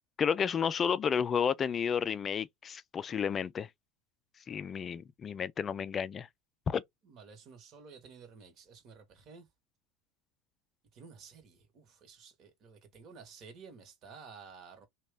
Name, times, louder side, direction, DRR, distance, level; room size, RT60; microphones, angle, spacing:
voice 1, 0.2-3.7 4.5-6.3 6.7-6.8, left 7 dB, 30° left, 0.3 m, -31 dB
voice 2, 7.0-9.5 10.9-14.9, right 5 dB, 45° right, 1.2 m, -53 dB
3.0 x 2.3 x 3.3 m
hypercardioid pair, 85°, 0 cm